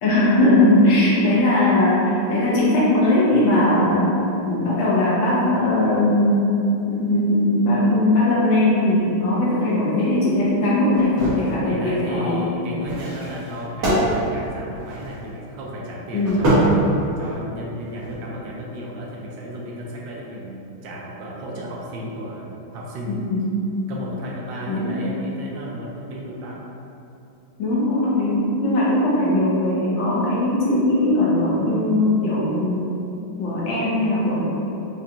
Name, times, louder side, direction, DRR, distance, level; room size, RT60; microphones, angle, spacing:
voice 1, 0.0-4.1 4.4-6.5 6.9-12.5 16.1-16.5 23.1-23.5 24.7-24.9 27.6-32.9 33.4-34.4, left 1 dB, 75° left, -7 dB, 1.5 m, -19 dB
sound 1, 10.9-11.6 12.8-15.3 16.2-17.4 17.9-18.1, right 1 dB, 60° right, 1.6 m, -23 dB
voice 2, 11.6-16.8 17.2-23.2 23.9-26.6, equal, 75° right, -3 dB, 1.2 m, -34 dB
5.0 x 2.3 x 2.8 m, 2.9 s
omnidirectional pair, 2.2 m